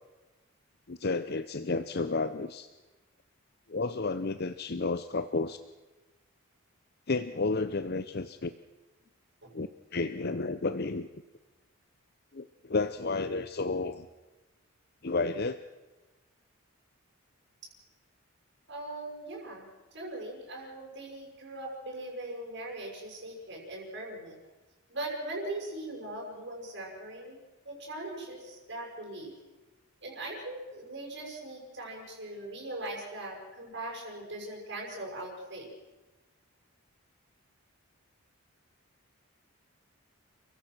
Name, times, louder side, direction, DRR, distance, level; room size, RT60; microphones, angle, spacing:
voice 1, 0.9-2.7 3.7-5.6 7.1-8.5 9.5-11.1 12.3-14.1 15.0-15.6, left 3 dB, 45° left, 11 dB, 0.7 m, -31 dB
voice 2, 18.7-24.4 24.9-27.4 27.6-29.3 30.0-35.7, right 1 dB, 50° right, -1 dB, 6.3 m, -40 dB
30.0 x 16.0 x 6.1 m, 1.2 s
head